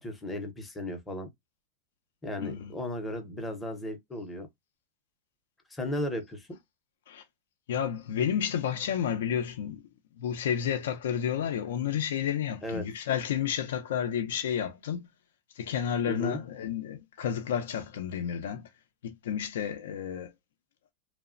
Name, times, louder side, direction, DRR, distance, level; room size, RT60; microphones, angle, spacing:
voice 1, 0.0-1.3 2.2-4.5 5.7-6.6 12.6-12.9 16.1-16.4, left 1 dB, 10° left, 0.6 m, -35 dB
voice 2, 2.4-2.7 7.1-7.2 7.7-9.8 10.2-15.1 15.5-18.7 19.0-20.3, left 8 dB, 85° left, 0.4 m, -31 dB
3.0 x 2.0 x 2.4 m
supercardioid pair, 175°, 0 cm